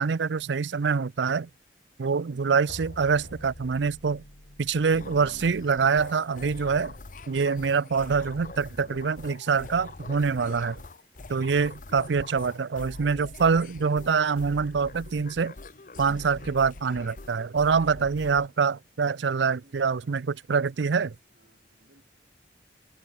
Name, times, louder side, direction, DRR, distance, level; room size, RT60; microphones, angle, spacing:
voice 1, 0.0-1.5 2.0-4.2 4.6-6.9 7.3-10.8 11.3-15.5 16.0-21.1, right 5 dB, 90° right, 0.5 m, -25 dB
sound 1, 2.3-6.3, equal, 65° left, 6.1 m, -47 dB
sound 2, 4.9-18.5, left 2 dB, 45° left, 0.9 m, -44 dB
voice 2, 19.1-20.8 21.3-22.1, right 1 dB, 65° right, 6.1 m, -61 dB
head